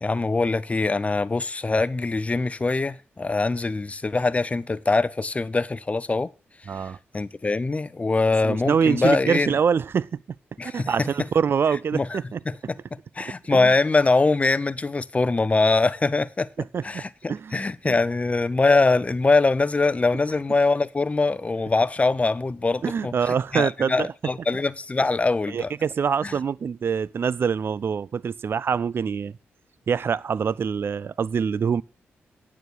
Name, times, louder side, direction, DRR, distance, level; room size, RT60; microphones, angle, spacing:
voice 1, 0.0-6.3 7.1-9.6 10.6-11.3 11.9-12.2 12.5-16.5 16.8-25.7 26.2-26.4, left 3 dB, 30° left, 0.7 m, -23 dB
voice 2, 6.7-7.0 8.4-10.2 10.6-12.4 13.3-13.7 16.6-17.0 17.3-18.0 22.8-24.1 25.5-29.3 29.9-31.8, right 6 dB, 55° right, 0.4 m, -25 dB
9.3 x 7.2 x 6.2 m
cardioid pair, 60°, 5 cm